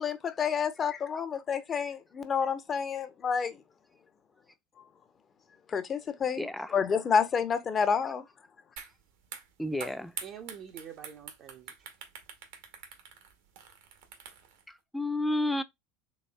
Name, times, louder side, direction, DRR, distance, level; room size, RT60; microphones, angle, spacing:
voice 1, 0.0-3.5 5.7-8.2, left 6 dB, 35° left, 0.8 m, -29 dB
voice 2, 6.4-6.8 8.0-8.1 9.6-10.1 14.7-15.6, left 1 dB, 5° left, 0.5 m, -31 dB
sound 1, 8.8-8.9 9.2-14.6, right 7 dB, 70° right, 0.9 m, -45 dB
voice 3, 10.2-11.7, right 8 dB, 45° right, 0.6 m, -46 dB
4.1 x 3.1 x 2.3 m
hypercardioid pair, 80°, 0 cm